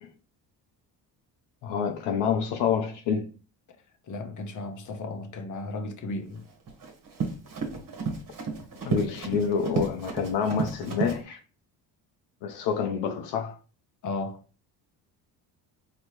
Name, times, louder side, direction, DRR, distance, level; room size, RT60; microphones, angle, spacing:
voice 1, 1.6-3.3 8.8-11.4 12.4-13.6, left 7 dB, 80° left, 0.7 m, -27 dB
voice 2, 4.1-6.4 14.0-14.4, left 2 dB, 45° left, 1.0 m, -35 dB
Run, 6.4-11.2, right 4 dB, 50° right, 1.4 m, -32 dB
4.3 x 3.1 x 3.0 m
cardioid pair, 90°, 42 cm